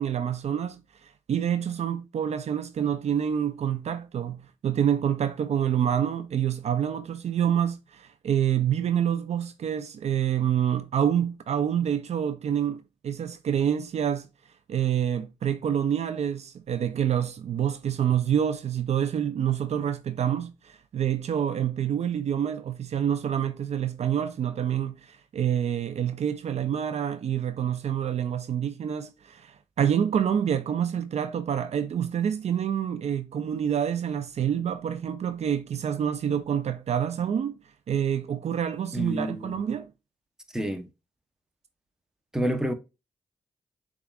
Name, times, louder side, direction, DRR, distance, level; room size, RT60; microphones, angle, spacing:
voice 1, 0.0-14.3 14.7-37.6 37.9-39.9, right 9 dB, 60° right, 0.4 m, -27 dB
voice 2, 38.9-39.5 40.5-40.9 42.3-42.7, equal, 5° right, 0.8 m, -28 dB
6.8 x 2.4 x 2.3 m
supercardioid pair, 50°, 12 cm